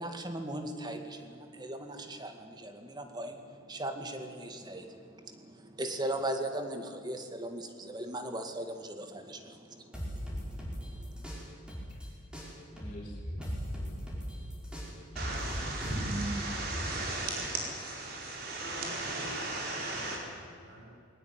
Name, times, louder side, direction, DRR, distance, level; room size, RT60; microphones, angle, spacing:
voice 1, 0.0-11.4, right 1 dB, 20° right, 6 dB, 2.1 m, -39 dB
sound 1, 9.9-12.1 12.3-16.9, equal, 5° right, 5.5 m, -39 dB
voice 2, 12.7-15.1, equal, 30° left, -6 dB, 5.1 m, -53 dB
sound 2, 15.2-20.2, right 2 dB, 50° right, 4.6 m, -35 dB
voice 3, 18.3-21.0, equal, 70° right, -1 dB, 7.8 m, -49 dB
21.5 x 19.0 x 9.7 m, 2.4 s
head